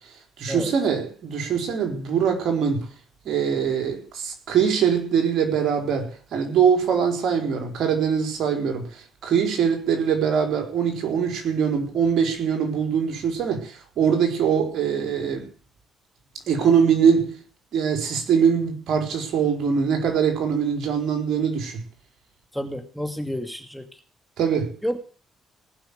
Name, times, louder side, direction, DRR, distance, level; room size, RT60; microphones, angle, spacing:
voice 1, 0.4-2.9 3.2-15.5 16.5-17.4 17.7-21.8 24.4-24.7, right 7 dB, 70° right, 4.5 m, -22 dB
voice 2, 22.5-23.9 24.8-25.0, equal, ahead, 2.5 m, -30 dB
19.0 x 6.4 x 8.2 m
supercardioid pair, 65°, 0 cm